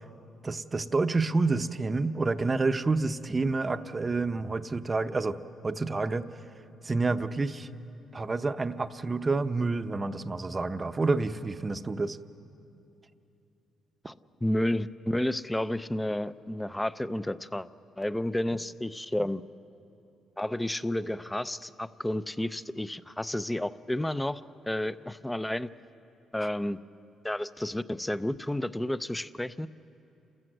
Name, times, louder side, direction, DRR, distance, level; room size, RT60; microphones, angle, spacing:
voice 1, 0.4-5.4 5.6-6.3 6.8-7.7 8.1-12.2, right 3 dB, 25° right, 10 dB, 0.7 m, -28 dB
voice 2, 14.4-17.7 18.0-19.4 20.4-24.4 24.7-25.7 26.3-26.8 27.2-29.7, left 1 dB, 10° left, 15 dB, 0.5 m, -31 dB
29.0 x 14.0 x 7.8 m, 2.8 s
cardioid pair, 90°, 0 cm